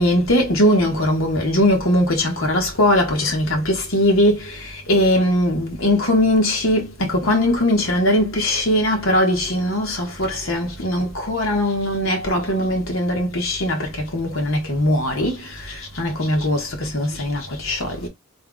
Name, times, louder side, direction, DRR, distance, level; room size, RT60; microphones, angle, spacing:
voice 1, 0.0-18.1, left 1 dB, 75° left, 1.6 m, -20 dB
3.5 x 2.4 x 3.8 m
head